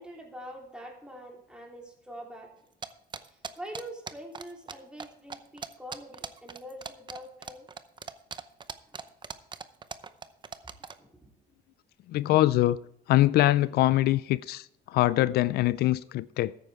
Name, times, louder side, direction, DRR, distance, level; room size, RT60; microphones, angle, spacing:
voice 1, 0.0-2.5 3.2-7.7 8.9-9.0 11.0-11.3, equal, 5° right, 3.2 m, -44 dB
sound 1, 2.8-4.7 5.0-5.1 5.3-11.0, right 6 dB, 25° right, 0.7 m, -39 dB
voice 2, 12.1-12.8 13.1-16.5, left 15 dB, 70° left, 0.4 m, -23 dB
13.5 x 9.3 x 3.6 m
cardioid pair, 110°, 17 cm